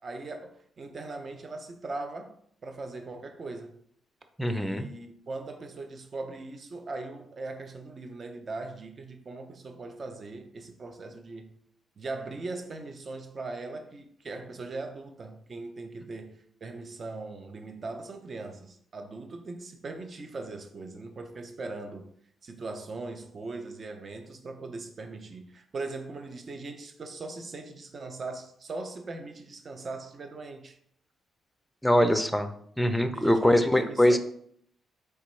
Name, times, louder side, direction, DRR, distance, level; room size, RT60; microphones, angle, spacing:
voice 1, 0.0-2.4 2.6-3.8 4.4-11.5 12.0-22.1 22.4-30.8 33.1-34.2, right 3 dB, 45° right, 0.6 m, -40 dB
voice 2, 4.4-4.9 31.8-32.5 32.8-34.2, equal, 5° left, 0.5 m, -23 dB
4.3 x 3.4 x 3.1 m
cardioid pair, 80°, 0 cm